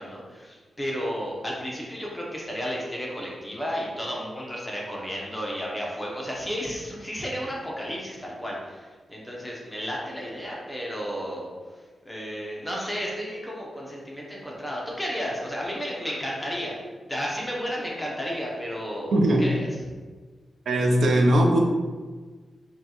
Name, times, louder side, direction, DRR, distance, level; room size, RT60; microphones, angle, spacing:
voice 1, 0.0-11.5 12.0-16.8 17.1-19.1 19.4-19.9, equal, 10° left, -4 dB, 0.8 m, -33 dB
voice 2, 19.1-19.5 20.7-21.6, right 1 dB, 80° right, 1 dB, 0.6 m, -19 dB
5.2 x 2.4 x 2.9 m, 1.4 s
wide cardioid pair, 110°, 0 cm